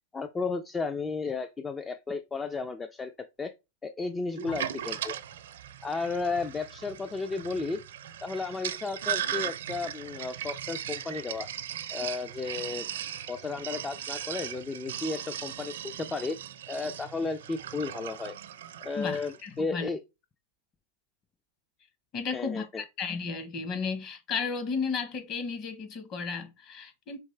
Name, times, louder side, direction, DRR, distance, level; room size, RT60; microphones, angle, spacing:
voice 1, 0.1-3.1 3.4-3.5 3.8-5.2 5.8-7.8 8.2-11.5 11.9-12.9 13.3-16.4 16.7-18.3 18.8-20.0 22.3-22.8, left 4 dB, 15° left, 0.3 m, -33 dB
Sink (filling or washing), 4.4-19.4, right 10 dB, 80° right, 0.5 m, -38 dB
voice 2, 19.0-19.9 22.1-27.2, left 5 dB, 35° left, 1.1 m, -34 dB
4.6 x 3.1 x 3.2 m
supercardioid pair, 135°, 0 cm